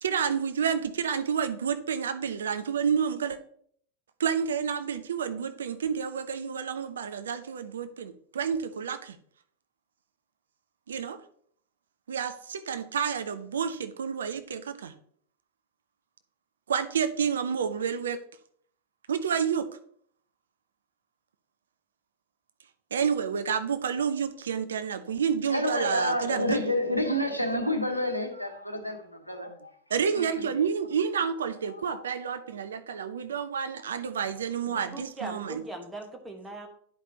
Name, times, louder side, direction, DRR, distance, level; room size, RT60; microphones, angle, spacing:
voice 1, 0.0-3.4 4.2-9.2 10.9-11.2 12.1-14.9 16.7-18.2 19.1-19.7 22.9-26.6 29.9-35.6, right 7 dB, 65° right, 0.5 m, -29 dB
voice 2, 25.5-29.7 30.1-30.5 31.7-32.0, left 1 dB, 90° left, 0.9 m, -29 dB
voice 3, 34.7-36.7, right 2 dB, 10° right, 1.4 m, -40 dB
10.5 x 4.9 x 2.9 m
figure-of-eight pair, 90°, 0 cm